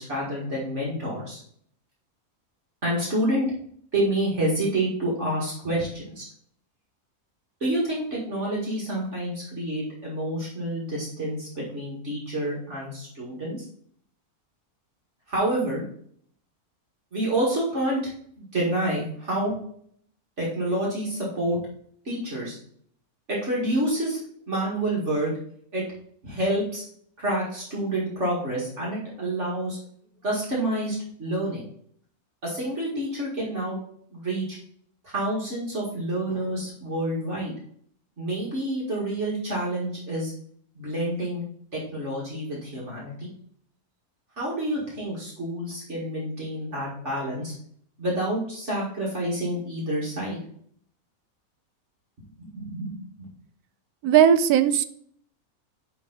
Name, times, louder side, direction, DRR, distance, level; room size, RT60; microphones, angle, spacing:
voice 1, 0.0-1.4 2.8-3.5 3.9-6.3 7.6-13.6 15.3-15.8 17.1-18.1 18.4-19.5 20.4-21.6 22.0-22.6 23.3-24.2 24.5-25.3 25.7-25.8 26.2-26.8 27.2-29.8 30.2-31.6 32.4-33.8 34.1-34.6 35.0-37.5 38.2-40.3 40.8-41.4 41.7-43.3 44.4-47.5 48.0-50.4 52.4-52.9, right 1 dB, 50° right, -5 dB, 2.3 m, -28 dB
voice 2, 54.0-54.8, right 9 dB, 85° right, 12 dB, 1.1 m, -17 dB
10.0 x 3.6 x 3.9 m, 0.62 s
omnidirectional pair, 1.6 m